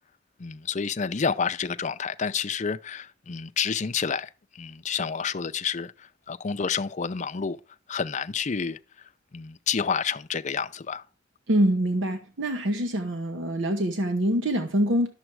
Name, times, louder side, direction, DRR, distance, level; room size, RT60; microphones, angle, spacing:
voice 1, 0.4-4.3 4.6-5.9 6.3-7.6 7.9-8.8 9.3-11.0, left 6 dB, 40° left, 0.5 m, -29 dB
voice 2, 11.5-15.1, right 1 dB, 80° right, 1.1 m, -25 dB
11.0 x 7.1 x 4.6 m
head